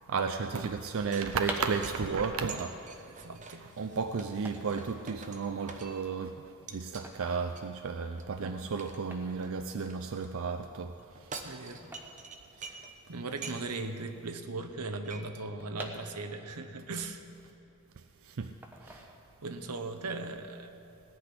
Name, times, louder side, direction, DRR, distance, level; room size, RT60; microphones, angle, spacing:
voice 1, 0.1-2.8 3.6-6.4 6.7-10.9 11.2-11.6 18.2-18.5 18.8-19.1, right 5 dB, 65° right, 7 dB, 0.5 m, -33 dB
sound 1, 0.8-6.2 6.7-7.1 7.5-10.3 11.0-13.0 13.3-13.9 14.3-14.4 14.6-15.2, right 4 dB, 35° right, 0.9 m, -47 dB
sound 2, 1.3-13.2 13.5-13.6 13.8-16.6 17.0-18.1 18.6-19.6 20.0-20.3, right 1 dB, 10° right, 1.1 m, -46 dB
voice 2, 3.1-3.6 8.4-8.6 11.4-11.8 12.6-12.8 13.1-17.2 19.4-20.7, right 3 dB, 85° right, 8 dB, 1.0 m, -38 dB
17.5 x 6.0 x 9.9 m, 2.7 s
head